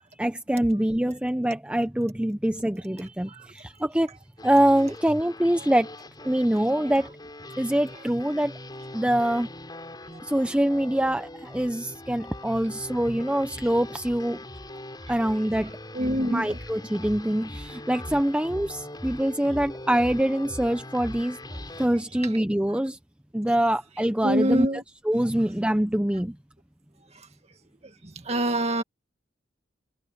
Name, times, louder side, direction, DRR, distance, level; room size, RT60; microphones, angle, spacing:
voice 1, 0.2-4.1 4.4-5.9 6.2-7.1 7.6-8.5 8.9-9.5 10.2-14.4 15.1-15.7 16.3-21.4 21.8-23.0 23.3-24.7 25.0-26.4, right 1 dB, 5° right, 0.6 m, -24 dB
sound 1, 4.4-21.9, left 1 dB, 20° left, 5.3 m, -41 dB
voice 2, 15.9-16.6 24.2-24.8 28.3-28.8, equal, 35° right, 2.2 m, -25 dB
head